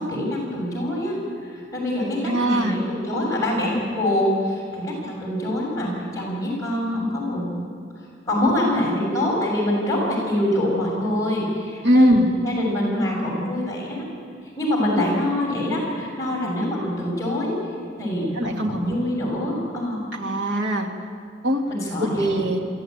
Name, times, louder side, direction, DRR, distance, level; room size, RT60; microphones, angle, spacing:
voice 1, 0.0-7.6 8.3-14.1 14.6-17.5 18.0-20.0 21.7-22.4, left 1 dB, 20° left, -3 dB, 6.4 m, -25 dB
voice 2, 2.2-2.8 8.4-8.5 11.8-12.3 18.3-18.9 20.1-20.9 21.4-21.6 22.0-22.6, equal, 85° right, 2 dB, 2.4 m, -21 dB
23.5 x 15.5 x 9.0 m, 2.2 s
head